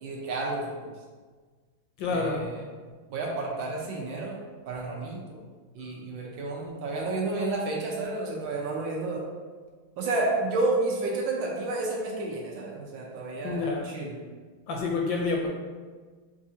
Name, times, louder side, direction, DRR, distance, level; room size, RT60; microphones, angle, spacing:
voice 1, 0.0-0.9 2.1-2.7 3.1-5.4 5.7-9.2 10.0-14.2, right 2 dB, 70° right, -2 dB, 1.4 m, -31 dB
voice 2, 2.0-2.5 13.4-13.8 14.7-15.5, left 4 dB, 75° left, 0 dB, 1.2 m, -28 dB
6.3 x 2.5 x 2.7 m, 1.4 s
omnidirectional pair, 2.3 m